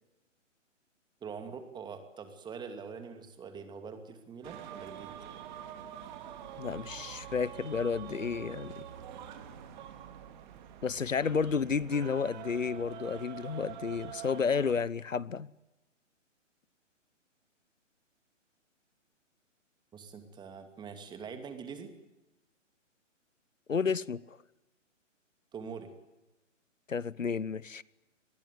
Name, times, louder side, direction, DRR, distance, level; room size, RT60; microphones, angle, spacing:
voice 1, 1.2-5.1 19.9-21.9 25.5-25.9, right 6 dB, 10° right, 2.5 m, -44 dB
sound 1, 4.4-14.7, right 10 dB, 35° right, 2.9 m, -46 dB
voice 2, 6.6-8.9 10.8-15.5 23.7-24.4 26.9-27.8, left 5 dB, 85° left, 1.0 m, -31 dB
25.5 x 21.0 x 9.4 m
figure-of-eight pair, 130°, 38 cm